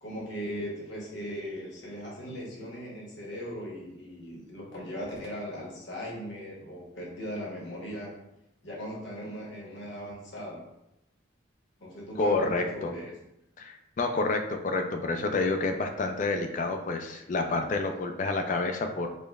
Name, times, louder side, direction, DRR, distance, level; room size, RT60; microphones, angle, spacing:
voice 1, 0.0-8.1 8.6-10.6 11.8-13.1 17.0-17.1, equal, 65° left, -3 dB, 1.0 m, -38 dB
voice 2, 12.2-12.9 13.6-19.1, left 3 dB, 40° left, 5 dB, 0.3 m, -29 dB
5.1 x 2.1 x 2.3 m, 0.85 s
head